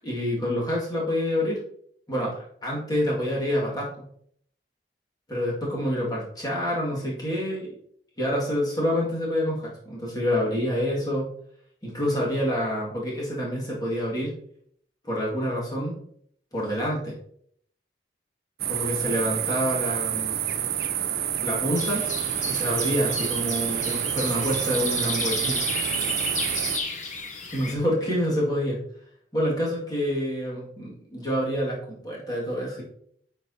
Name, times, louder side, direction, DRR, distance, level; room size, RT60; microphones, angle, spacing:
voice 1, 0.0-1.6 2.1-2.3 2.6-3.9 5.3-7.8 8.2-11.3 11.8-14.3 15.0-16.0 16.5-17.2 18.7-20.4 21.4-22.1 22.5-25.6 27.5-28.8 29.3-32.8, equal, 20° left, -5 dB, 2.0 m, -27 dB
sound 1, 18.6-26.8, right 10 dB, 55° right, 0.5 m, -28 dB
sound 2, 21.8-27.8, left 4 dB, 45° left, 0.9 m, -33 dB
8.8 x 4.5 x 2.8 m, 0.65 s
head